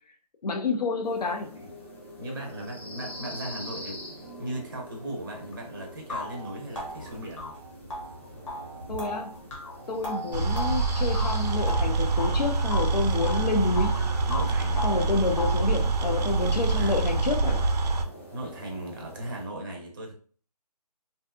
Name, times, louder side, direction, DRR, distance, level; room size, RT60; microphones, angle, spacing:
voice 1, 0.4-1.6 8.9-9.3 9.9-13.9 14.8-17.7, left 4 dB, 75° left, 2 dB, 0.5 m, -29 dB
sound 1, 1.0-19.5, equal, 20° left, 0.4 m, -43 dB
voice 2, 2.2-4.0 4.4-7.5 14.3-14.8 16.8-17.0 18.3-20.1, right 1 dB, 30° right, 1 dB, 0.5 m, -37 dB
sound 2, 5.5-5.6 6.1-12.4 12.7-14.0 14.3-15.7, left 1 dB, 50° left, 0.8 m, -36 dB
sound 3, 10.3-18.0, right 3 dB, 80° right, 0.4 m, -25 dB
2.7 x 2.3 x 2.2 m, 0.43 s
figure-of-eight pair, 165°, 21 cm